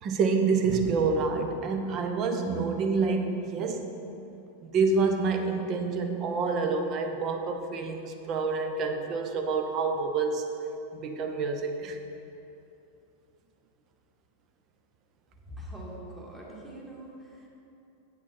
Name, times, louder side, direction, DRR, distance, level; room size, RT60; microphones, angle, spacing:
voice 1, 0.0-3.9 4.6-10.5 11.0-12.0, right 4 dB, 35° right, 5 dB, 0.8 m, -27 dB
voice 2, 15.5-17.5, equal, 5° right, -5 dB, 1.9 m, -43 dB
8.2 x 7.2 x 4.3 m, 2.8 s
figure-of-eight pair, 90°, 0 cm